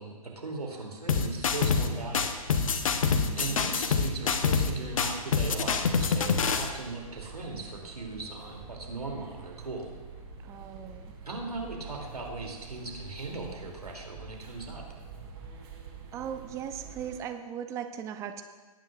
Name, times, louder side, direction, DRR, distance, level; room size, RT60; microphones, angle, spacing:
voice 1, 0.0-2.5 2.9-9.8 11.2-14.8, right 3 dB, 90° right, 0 dB, 2.7 m, -38 dB
sound 1, 1.1-1.9 2.1-4.7 5.0-6.7, left 5 dB, 65° left, 1.0 m, -26 dB
sound 2, 2.3-17.2, right 6 dB, 45° right, 2.7 m, -46 dB
voice 2, 3.2-3.6 10.5-11.1 16.1-18.4, right 9 dB, 15° right, 8 dB, 0.5 m, -38 dB
19.5 x 9.2 x 2.4 m, 1.3 s
figure-of-eight pair, 130°, 19 cm